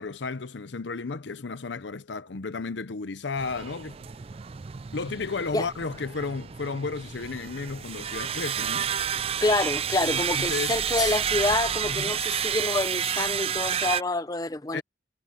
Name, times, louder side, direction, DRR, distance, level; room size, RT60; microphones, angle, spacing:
voice 1, 0.0-4.0 4.9-8.9 10.0-10.8 11.8-12.2 14.7-14.8, left 4 dB, 80° left, 0.7 m, -33 dB
sound 1, 3.4-14.0, right 9 dB, 30° right, 0.4 m, -30 dB
sound 2, 7.6-13.0, equal, 45° left, 5.5 m, -47 dB
voice 2, 9.4-14.8, left 2 dB, 20° left, 0.7 m, -27 dB
head